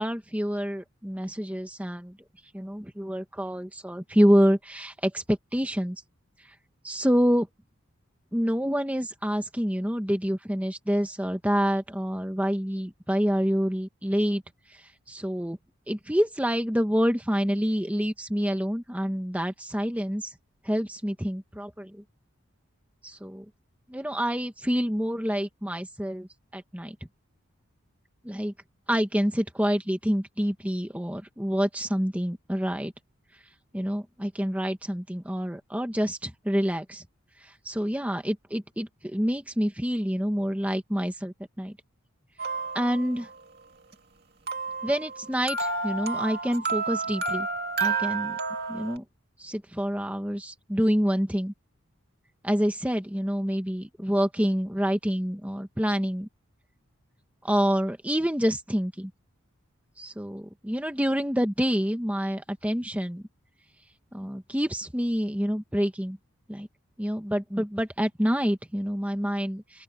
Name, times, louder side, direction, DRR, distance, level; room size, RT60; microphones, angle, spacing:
voice 1, 0.0-2.2 2.5-6.0 6.4-6.5 6.8-7.5 8.3-14.4 14.7-15.6 15.9-20.3 20.6-22.0 23.0-23.4 23.9-26.3 26.5-26.9 28.2-28.5 28.9-32.9 33.7-37.0 37.4-41.7 42.7-43.3 44.8-47.5 47.8-48.4 48.7-49.0 49.4-51.5 52.4-56.3 57.4-59.1 60.0-63.2 64.1-66.2 66.5-66.7 67.0-69.8, equal, 5° right, 1.4 m, -27 dB
sound 1, 42.4-43.3 44.5-49.0, right 4 dB, 50° right, 2.3 m, -30 dB
open air
head